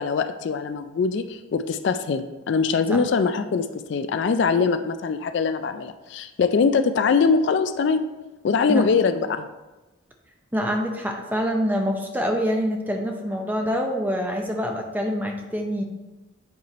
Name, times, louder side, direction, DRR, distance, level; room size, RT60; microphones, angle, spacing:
voice 1, 0.0-8.0 8.4-9.5, left 5 dB, 60° left, 9 dB, 0.3 m, -22 dB
voice 2, 10.5-15.8, equal, 10° right, 2 dB, 0.6 m, -25 dB
8.0 x 3.2 x 4.1 m, 1.1 s
head